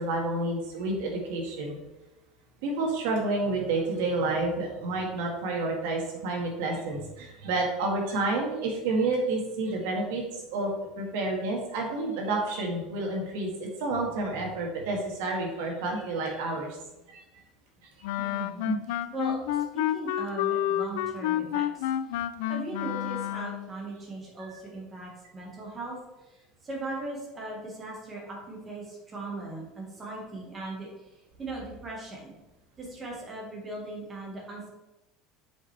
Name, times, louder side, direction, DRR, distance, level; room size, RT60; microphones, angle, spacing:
voice 1, 0.0-1.8 2.6-10.7 11.0-16.8 17.1-17.2 18.6-18.8 24.5-24.6, right 2 dB, 75° right, 0 dB, 1.7 m, -29 dB
Wind instrument woodwind instrument, 18.0-23.7, left 12 dB, 80° left, 0.3 m, -29 dB
voice 2, 18.2-18.6 18.9-22.2 22.5-31.1 31.4-32.3 32.8-34.7, right 2 dB, 15° right, -2 dB, 1.5 m, -39 dB
7.3 x 5.1 x 3.3 m, 1.0 s
cardioid pair, 180°, 0 cm